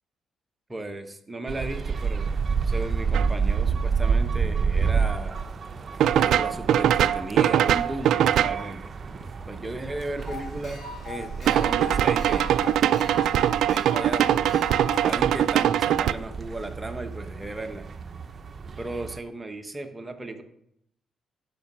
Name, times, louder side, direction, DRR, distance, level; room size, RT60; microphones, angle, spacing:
voice 1, 0.7-2.3 2.6-5.4 6.0-8.9 9.5-13.3 13.6-14.6 15.0-17.8 18.8-20.4, right 2 dB, 15° right, 6 dB, 1.1 m, -35 dB
sound 1, 1.5-19.2, right 5 dB, 40° right, 0.8 m, -30 dB
sound 2, 3.1-3.3 6.0-8.6 11.5-16.1, right 10 dB, 75° right, 0.4 m, -22 dB
sound 3, 10.2-15.2, left 4 dB, 55° left, 3.6 m, -40 dB
11.5 x 5.2 x 6.2 m, 0.76 s
cardioid pair, 90°, 0 cm